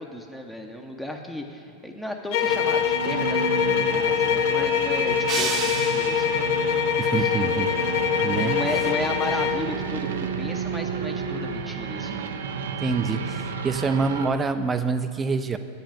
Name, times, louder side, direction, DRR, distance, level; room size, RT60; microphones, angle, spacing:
voice 1, 0.0-6.8 7.2-7.3 8.4-12.4, left 1 dB, 5° left, 2 dB, 0.8 m, -35 dB
sound 1, 2.3-9.7, left 9 dB, 60° left, 0.6 m, -24 dB
sound 2, 2.4-14.3, right 6 dB, 80° right, 0.6 m, -31 dB
sound 3, 5.3-6.5, right 6 dB, 40° right, 0.9 m, -30 dB
voice 2, 7.0-7.8 8.2-8.6 12.8-15.6, right 4 dB, 20° right, 10 dB, 0.5 m, -26 dB
8.4 x 5.4 x 7.4 m, 2.2 s
hypercardioid pair, 105°, 0 cm